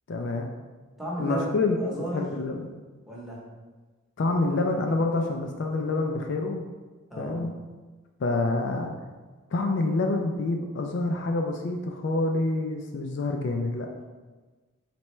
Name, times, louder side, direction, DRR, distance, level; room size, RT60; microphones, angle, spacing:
voice 1, 0.1-0.5 1.2-2.7 4.2-6.6 7.2-7.5 8.2-8.9 9.5-13.9, left 2 dB, 55° left, 2 dB, 0.3 m, -27 dB
voice 2, 1.0-2.3 3.1-3.5 7.1-7.5, right 1 dB, ahead, -6 dB, 0.9 m, -34 dB
4.3 x 3.4 x 3.1 m, 1.3 s
head